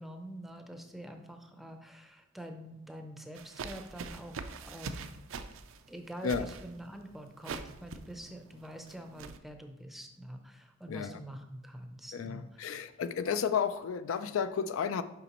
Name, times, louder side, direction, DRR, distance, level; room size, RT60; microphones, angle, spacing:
voice 1, 0.0-5.1 5.9-12.7, equal, ahead, 5 dB, 0.5 m, -46 dB
sound 1, 3.3-9.4, right 4 dB, 75° right, 0.4 m, -44 dB
voice 2, 10.9-11.2 12.1-15.0, left 7 dB, 90° left, 12 dB, 0.4 m, -32 dB
6.8 x 5.0 x 2.9 m, 0.94 s
head